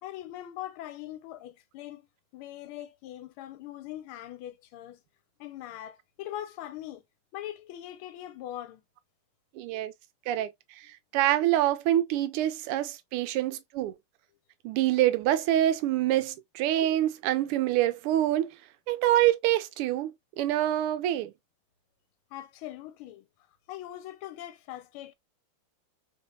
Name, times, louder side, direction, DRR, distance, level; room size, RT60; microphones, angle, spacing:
voice 1, 0.0-2.1 2.3-5.0 5.4-7.0 7.3-8.8 22.3-23.2 23.7-25.1, left 13 dB, 80° left, 1.4 m, -41 dB
voice 2, 9.5-9.9 10.3-13.9 14.6-18.5 18.9-21.3, right 13 dB, 85° right, 1.5 m, -26 dB
3.6 x 2.8 x 2.3 m
omnidirectional pair, 2.4 m